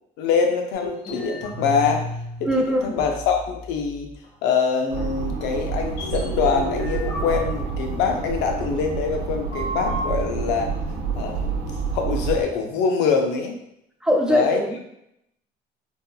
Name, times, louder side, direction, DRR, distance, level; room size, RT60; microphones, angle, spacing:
voice 1, 0.2-2.1 2.4-4.1 4.4-10.7 11.2-11.5 11.9-13.6 14.3-14.6, left 5 dB, 90° left, 4 dB, 0.5 m, -24 dB
sound 1, 0.7-2.5 2.8-3.8 4.2-4.3 4.9-5.1 5.8-8.4 9.5-10.0, equal, 65° left, 1.1 m, -33 dB
voice 2, 2.4-2.8 14.0-14.8, equal, 5° right, -1 dB, 0.5 m, -21 dB
sound 2, 4.9-12.4, right 5 dB, 75° right, 0.5 m, -28 dB
3.5 x 2.2 x 2.3 m, 0.77 s
cardioid pair, 100°, 17 cm